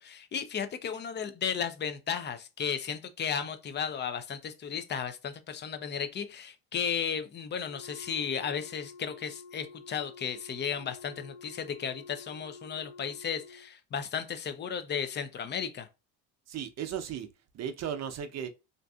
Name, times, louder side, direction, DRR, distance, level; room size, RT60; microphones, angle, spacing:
voice 1, 0.0-15.9, left 7 dB, 30° left, 0.4 m, -34 dB
Wind instrument woodwind instrument, 7.6-13.7, left 4 dB, 75° left, 1.2 m, -50 dB
voice 2, 16.5-18.5, right 8 dB, 40° right, 0.6 m, -36 dB
2.5 x 2.4 x 2.3 m
supercardioid pair, 80°, 40 cm